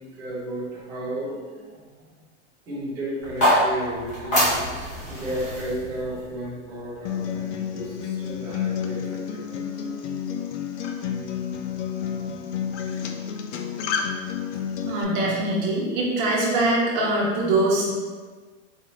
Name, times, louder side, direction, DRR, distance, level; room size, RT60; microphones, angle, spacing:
voice 1, 0.0-1.9 2.7-9.9 11.9-12.5, right 1 dB, 5° right, -8 dB, 0.4 m, -34 dB
sound 1, 3.2-7.3, equal, 20° left, 0.9 m, -26 dB
Acoustic guitar, 7.0-15.0, left 8 dB, 65° left, 0.5 m, -30 dB
voice 2, 14.9-17.9, right 2 dB, 35° right, -4 dB, 0.8 m, -23 dB
4.1 x 2.6 x 3.1 m, 1.4 s
supercardioid pair, 170°, 38 cm